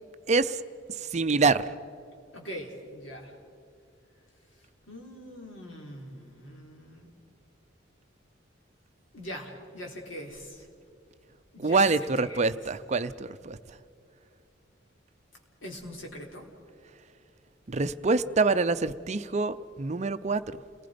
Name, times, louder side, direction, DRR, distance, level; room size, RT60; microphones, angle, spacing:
voice 1, 0.3-0.6 1.1-1.7 11.6-13.6 17.7-20.6, right 3 dB, 35° right, 12 dB, 0.5 m, -25 dB
voice 2, 2.3-3.3 4.9-7.1 9.1-10.7 11.5-12.7 15.6-16.5, equal, 85° left, 0 dB, 3.9 m, -42 dB
29.0 x 19.5 x 5.1 m, 2.4 s
head